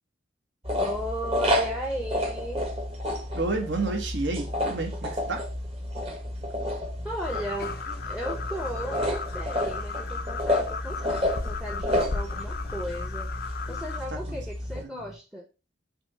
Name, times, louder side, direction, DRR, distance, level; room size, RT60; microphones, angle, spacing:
sound 1, 0.6-14.8, left 1 dB, 30° right, 1.2 m, -30 dB
voice 1, 0.8-2.7 7.0-7.8 8.1-13.3 13.7-15.4, equal, 5° right, 2 dB, 0.7 m, -35 dB
voice 2, 3.3-5.4 14.1-14.4 14.7-14.9, right 3 dB, 65° right, 3 dB, 1.3 m, -30 dB
sound 2, 4.8-6.0 6.3-6.5 7.0-9.8 10.1-11.3 11.6-11.8 12.3-15.2, equal, 85° right, 1.8 m, -48 dB
sound 3, 7.2-14.0, left 4 dB, 50° left, 0.5 m, -36 dB
6.1 x 3.0 x 5.4 m, 0.31 s
head